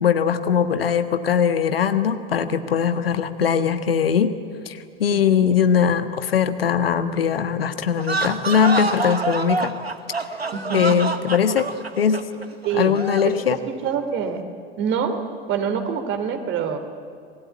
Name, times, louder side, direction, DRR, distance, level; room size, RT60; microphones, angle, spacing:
voice 1, 0.0-4.3 4.6-9.8 10.7-11.7 12.0-12.2 12.7-13.6, left 7 dB, 70° left, 10 dB, 1.4 m, -20 dB
voice 2, 5.1-5.5 10.5-10.9 12.6-13.0 13.2-14.4 14.8-15.2 15.5-16.8, right 7 dB, 40° right, 7 dB, 3.2 m, -26 dB
sound 1, 8.0-13.4, right 3 dB, 90° right, 1.3 m, -27 dB
28.0 x 20.5 x 8.6 m, 2.2 s
figure-of-eight pair, 80°, 30 cm